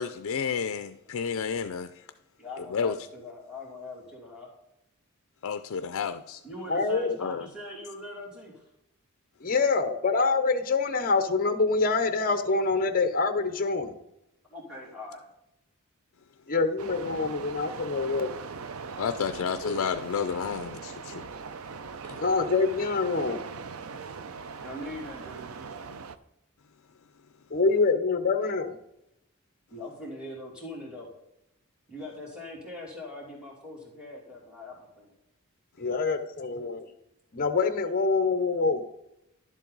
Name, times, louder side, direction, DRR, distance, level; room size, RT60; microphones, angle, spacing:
voice 1, 0.0-1.9 2.7-2.9 5.4-6.4 7.2-7.5 19.0-21.3 22.1-22.2, left 6 dB, 70° left, 0.4 m, -31 dB
voice 2, 2.4-4.5 6.4-8.6 14.5-15.2 24.6-25.7 29.7-31.1 31.9-35.1 38.0-38.1, left 2 dB, 5° right, 2.8 m, -42 dB
voice 3, 6.7-7.2 9.4-13.9 16.5-18.3 19.6-19.8 22.2-23.4 27.5-28.8 35.8-36.9 37.3-38.8, left 4 dB, 40° left, 0.7 m, -25 dB
sound 1, 16.8-26.2, right 5 dB, 75° right, 0.5 m, -40 dB
11.0 x 7.4 x 4.0 m
head